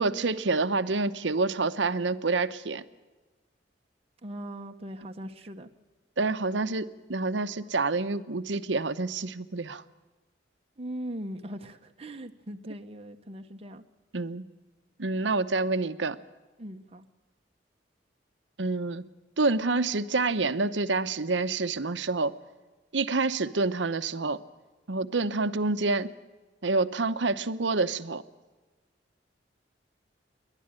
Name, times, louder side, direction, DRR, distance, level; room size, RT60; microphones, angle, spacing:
voice 1, 0.0-2.8 6.2-9.8 14.1-14.5 15.0-16.2 18.6-19.1 19.4-22.3 22.9-24.4 24.9-26.1 26.6-28.2, right 3 dB, 80° right, 12 dB, 0.9 m, -27 dB
voice 2, 4.2-5.7 10.8-13.8 16.6-17.0, right 1 dB, 35° right, 4 dB, 1.0 m, -40 dB
28.5 x 11.5 x 8.9 m, 1.3 s
head